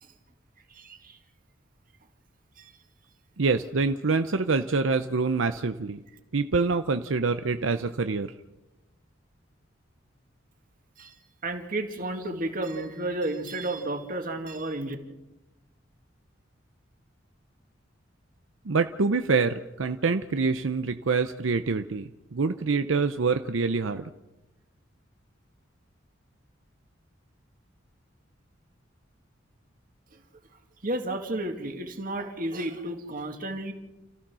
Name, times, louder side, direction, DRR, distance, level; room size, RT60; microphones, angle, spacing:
voice 1, 0.7-1.2 2.6-2.7 11.0-11.2 11.4-15.0 30.8-33.7, right 1 dB, 45° right, 4 dB, 2.2 m, -32 dB
voice 2, 3.4-6.0 6.3-8.3 18.7-24.1, right 4 dB, 80° right, 9 dB, 0.7 m, -26 dB
29.0 x 14.5 x 6.3 m, 1.0 s
head